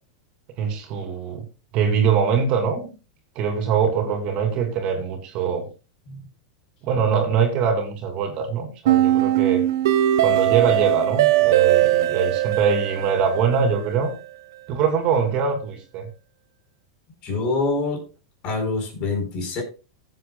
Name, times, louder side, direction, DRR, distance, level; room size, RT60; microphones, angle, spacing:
voice 1, 0.6-1.4 1.7-2.9 3.3-5.7 6.8-9.6 10.2-14.1 14.7-16.0, right 6 dB, 45° right, 4 dB, 2.9 m, -23 dB
sound 1, 8.9-13.9, right 13 dB, 75° right, 1.1 m, -20 dB
voice 2, 17.2-18.0 18.4-19.6, left 3 dB, 45° left, 4 dB, 4.4 m, -25 dB
16.0 x 7.7 x 2.3 m, 0.31 s
hypercardioid pair, 110°, 2 cm